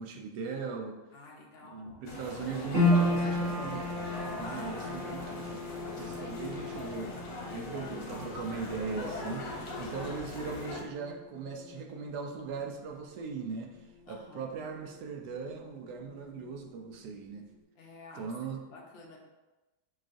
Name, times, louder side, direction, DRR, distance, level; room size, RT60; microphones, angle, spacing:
voice 1, 0.0-1.0 1.6-3.9 4.4-5.6 6.0-7.2 7.5-9.5 9.8-13.8 14.1-17.5 18.2-18.6, right 5 dB, 75° right, 2 dB, 1.1 m, -39 dB
voice 2, 1.1-2.0 4.4-5.3 7.4-8.2 9.8-10.3 14.1-14.4 17.8-19.2, left 3 dB, 55° left, -2 dB, 0.7 m, -49 dB
sound 1, 2.1-10.8, left 2 dB, 80° left, 1.4 m, -41 dB
sound 2, 2.7-15.1 15.4-16.4 16.8-16.9, left 1 dB, 40° right, 1.5 m, -35 dB
6.0 x 2.4 x 2.5 m, 1.1 s
omnidirectional pair, 1.8 m